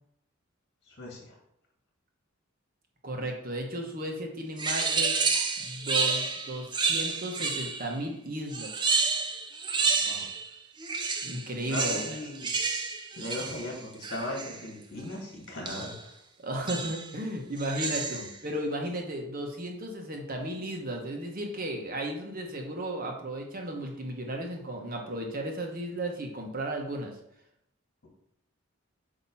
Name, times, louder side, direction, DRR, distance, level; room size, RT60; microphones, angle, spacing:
voice 1, 0.9-1.4 10.0-10.3 11.6-12.5 13.1-16.1 18.1-18.3, left 1 dB, 50° left, -1 dB, 2.4 m, -38 dB
voice 2, 3.0-5.2 5.6-8.7 11.2-12.2 16.4-27.1, right 1 dB, 40° right, 2 dB, 1.1 m, -34 dB
sound 1, 4.6-7.9 8.5-10.5 10.8-14.6 15.7-16.0 16.7-17.1 17.6-18.4, right 4 dB, 20° right, 0.6 m, -30 dB
8.5 x 2.9 x 5.5 m, 0.77 s
head